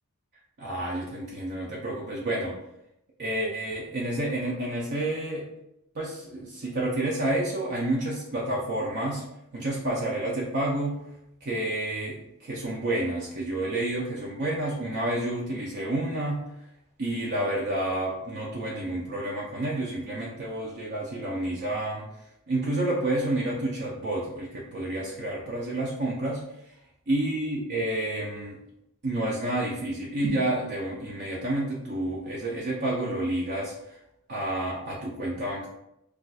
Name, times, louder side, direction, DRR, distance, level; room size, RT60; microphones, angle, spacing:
voice 1, 0.6-2.6 3.2-5.4 5.9-9.2 9.5-11.0 11.4-16.4 17.0-22.0 22.5-26.4 27.1-28.6 29.0-33.7 34.3-35.7, right 1 dB, 50° right, -5 dB, 0.6 m, -29 dB
2.4 x 2.3 x 4.0 m, 0.82 s
head